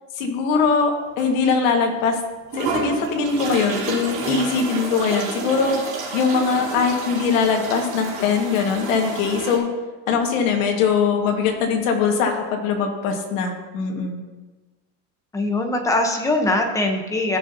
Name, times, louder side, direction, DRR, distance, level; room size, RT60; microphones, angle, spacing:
voice 1, 0.2-2.2 2.5-5.7 6.1-9.7 10.1-14.2, left 5 dB, 85° left, 2 dB, 1.8 m, -21 dB
sound 1, 1.2-1.3 1.8-1.9 2.5-9.6, right 4 dB, 45° right, 3.2 m, -30 dB
voice 2, 15.3-17.4, left 2 dB, 10° left, 3 dB, 0.9 m, -21 dB
15.5 x 6.3 x 2.8 m, 1.2 s
cardioid pair, 160°, 39 cm